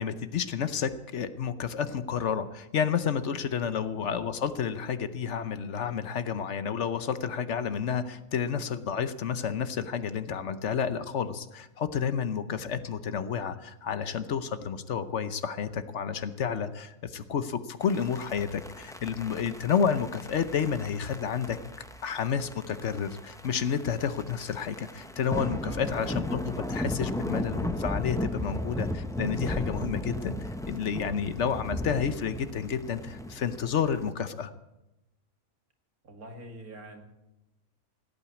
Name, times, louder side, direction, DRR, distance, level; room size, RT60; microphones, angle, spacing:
voice 1, 0.0-21.6 22.0-30.4 30.7-34.5, left 7 dB, 60° left, 12 dB, 1.1 m, -30 dB
voice 2, 3.4-3.9 25.6-25.9 36.0-37.0, right 1 dB, 90° right, 4 dB, 2.5 m, -45 dB
sound 1, 17.8-34.1, left 1 dB, 5° left, 0.4 m, -36 dB
16.5 x 8.9 x 8.3 m, 0.97 s
omnidirectional pair, 1.5 m